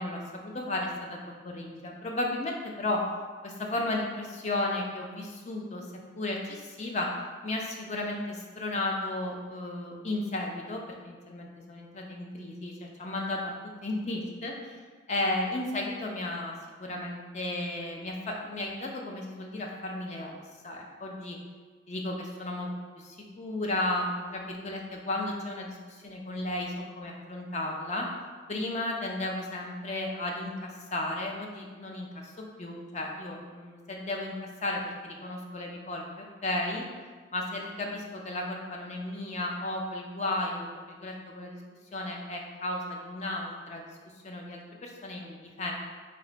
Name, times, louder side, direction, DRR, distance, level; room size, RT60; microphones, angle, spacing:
voice 1, 0.0-3.0 3.4-5.9 6.2-7.1 7.4-13.5 13.8-14.5 15.1-16.5 16.8-20.4 20.6-21.4 21.9-22.7 23.0-28.1 28.5-34.3 34.6-36.0 36.4-36.8 37.3-41.6 41.9-43.8 44.2-45.8, left 2 dB, 35° left, 0 dB, 0.4 m, -34 dB
3.2 x 2.5 x 3.9 m, 1.5 s
head